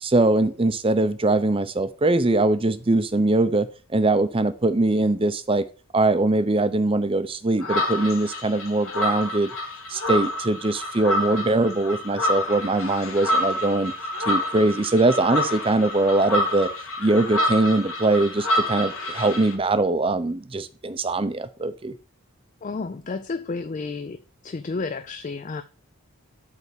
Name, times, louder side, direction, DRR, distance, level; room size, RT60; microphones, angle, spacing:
voice 1, 0.0-3.7 3.9-5.6 5.9-9.5 9.9-13.9 14.3-16.7 17.0-21.9, right 2 dB, 25° right, 0.6 m, -22 dB
sound 1, 7.6-19.5, left 1 dB, 75° left, 1.9 m, -28 dB
voice 2, 22.6-24.2 24.4-25.6, left 4 dB, 35° left, 0.4 m, -31 dB
8.4 x 3.5 x 6.7 m
head